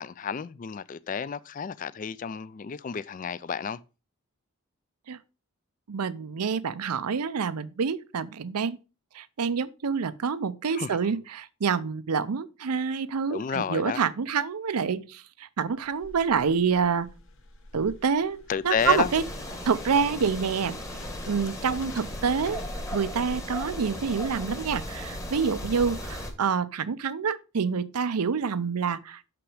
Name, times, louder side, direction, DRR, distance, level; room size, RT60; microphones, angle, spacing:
voice 1, 0.0-3.8 10.7-10.9 13.3-14.0 18.5-19.1, left 6 dB, 35° left, 0.3 m, -31 dB
voice 2, 5.9-8.8 9.1-17.1 17.7-19.2 19.7-20.8 21.3-22.6 22.9-29.2, right 6 dB, 90° right, 0.6 m, -27 dB
sound 1, 15.7-24.0, left 1 dB, 60° left, 1.2 m, -46 dB
sound 2, 18.8-26.3, left 1 dB, 15° left, 1.1 m, -37 dB
6.2 x 5.9 x 4.8 m
head